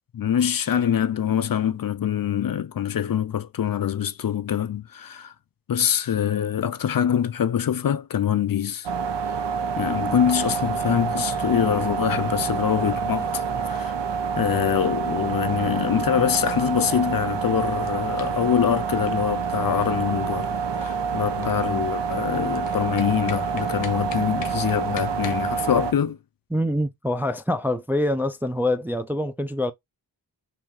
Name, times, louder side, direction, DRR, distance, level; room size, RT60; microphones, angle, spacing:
voice 1, 0.1-5.3 5.7-8.9 9.3-9.4 9.8-14.0 14.4-26.2, left 9 dB, 50° left, 0.5 m, -24 dB
sound 1, 8.8-25.9, right 6 dB, 75° right, 0.6 m, -27 dB
sound 2, 17.4-25.4, left 8 dB, 85° left, 0.7 m, -43 dB
voice 2, 26.5-29.7, left 1 dB, 5° right, 0.3 m, -25 dB
3.0 x 2.7 x 3.5 m
cardioid pair, 40°, 44 cm